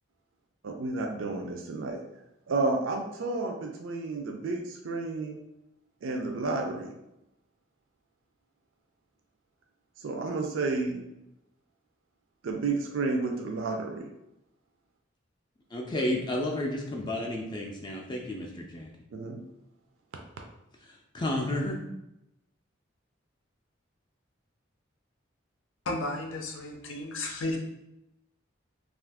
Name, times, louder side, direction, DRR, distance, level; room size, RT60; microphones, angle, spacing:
voice 1, 0.6-2.0 2.5-5.4 6.0-6.9 10.0-11.0 12.4-14.1 19.1-19.4, right 3 dB, 80° right, 2 dB, 0.4 m, -31 dB
voice 2, 15.7-18.9 20.8-21.8, left 1 dB, 20° left, 0 dB, 0.3 m, -32 dB
voice 3, 25.9-27.6, left 2 dB, 80° left, 2 dB, 0.5 m, -33 dB
2.6 x 2.4 x 3.4 m, 0.88 s
head